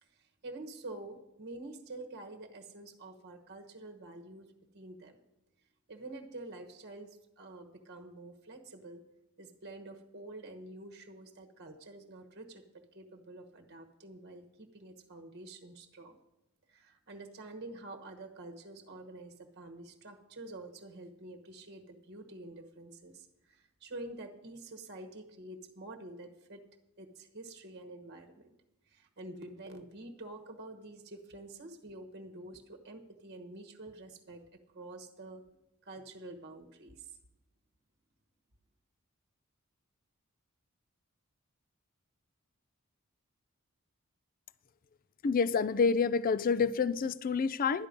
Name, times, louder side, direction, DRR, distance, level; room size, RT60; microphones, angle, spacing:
voice 1, 0.0-5.2 5.9-9.0 9.4-16.2 16.7-26.6 27.0-28.5 28.9-34.5 34.7-35.4 35.8-37.2, right 2 dB, 50° right, 1.2 m, -48 dB
voice 2, 45.2-47.9, left 5 dB, 40° left, 0.4 m, -28 dB
12.0 x 10.0 x 5.2 m
head